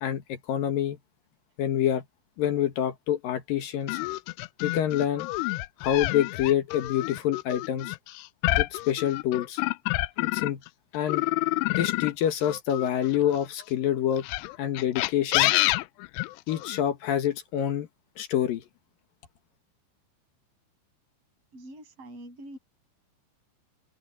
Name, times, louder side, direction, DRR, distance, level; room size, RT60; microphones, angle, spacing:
voice 1, 0.0-1.0 1.6-2.0 2.4-4.0 4.6-5.3 5.8-8.0 8.6-9.6 10.2-10.6 10.9-11.3 11.7-14.3 14.6-15.5 16.5-17.9 18.2-18.6, left 10 dB, 65° left, 2.6 m, -27 dB
sound 1, 3.9-10.7 11.1-13.5 14.2-16.8, left 20 dB, 90° left, 2.4 m, -28 dB
voice 2, 21.5-22.6, right 1 dB, 30° right, 8.6 m, -45 dB
omnidirectional pair, 5.4 m